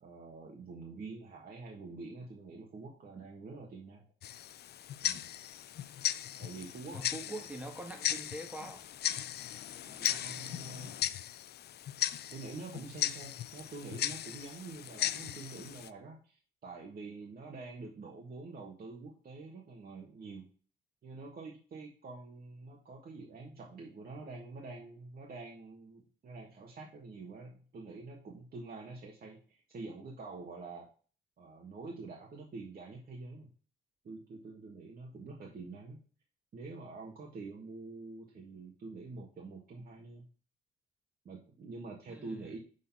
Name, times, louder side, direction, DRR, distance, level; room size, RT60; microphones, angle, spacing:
voice 1, 0.0-4.0 5.0-5.3 6.4-7.4 9.8-11.0 12.3-20.5 21.0-30.9 31.4-33.5 34.0-36.0 36.5-40.2 41.2-42.6, right 3 dB, 50° right, -1 dB, 1.5 m, -46 dB
Tick-tock, 4.2-15.9, left 11 dB, 55° left, 0.4 m, -37 dB
voice 2, 6.9-8.8 42.1-42.5, right 1 dB, 5° right, 3 dB, 1.8 m, -44 dB
6.5 x 4.0 x 5.6 m, 0.40 s
cardioid pair, 90°, 20 cm